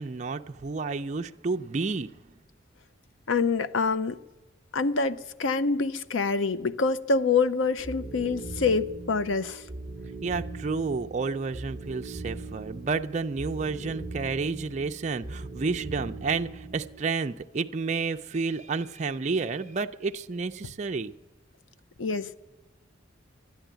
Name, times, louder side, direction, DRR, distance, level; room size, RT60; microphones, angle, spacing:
voice 1, 0.0-2.1 10.2-21.1, right 4 dB, 35° right, 0.4 m, -30 dB
voice 2, 3.3-4.2 4.7-9.6 22.0-22.4, left 4 dB, 85° left, 0.6 m, -26 dB
sound 1, 7.8-17.0, right 2 dB, 20° right, 0.9 m, -40 dB
13.0 x 10.0 x 9.0 m
head